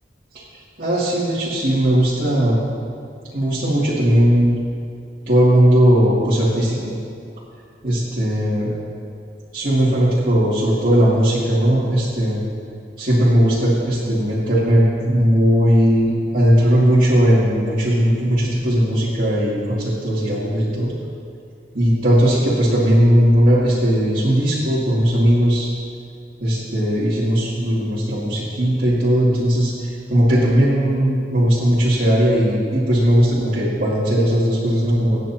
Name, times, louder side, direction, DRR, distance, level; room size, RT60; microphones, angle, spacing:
voice 1, 0.3-2.6 3.3-4.5 5.3-6.9 7.8-8.7 9.5-12.4 13.0-20.9 21.7-25.7 26.4-35.2, equal, 50° right, -11 dB, 2.6 m, -17 dB
25.0 x 9.2 x 2.9 m, 2.3 s
head